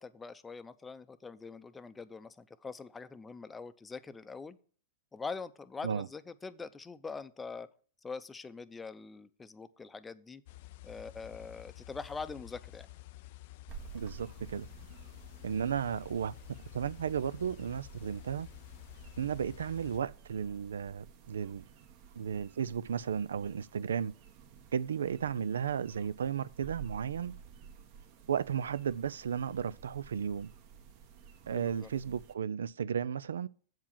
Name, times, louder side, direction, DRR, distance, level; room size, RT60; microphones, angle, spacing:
voice 1, 0.0-4.6 5.1-7.7 8.0-10.4 10.8-12.9 31.5-31.9, left 4 dB, 15° left, 0.6 m, -43 dB
sound 1, 10.5-20.0, left 17 dB, 60° left, 0.3 m, -51 dB
sound 2, 13.7-32.3, right 7 dB, 50° right, 1.2 m, -53 dB
voice 2, 13.9-14.7 15.4-18.5 19.2-21.6 22.2-24.1 24.7-27.3 28.3-30.5 31.5-33.5, right 7 dB, 90° right, 0.4 m, -34 dB
7.6 x 4.8 x 7.2 m
hypercardioid pair, 120°, 0 cm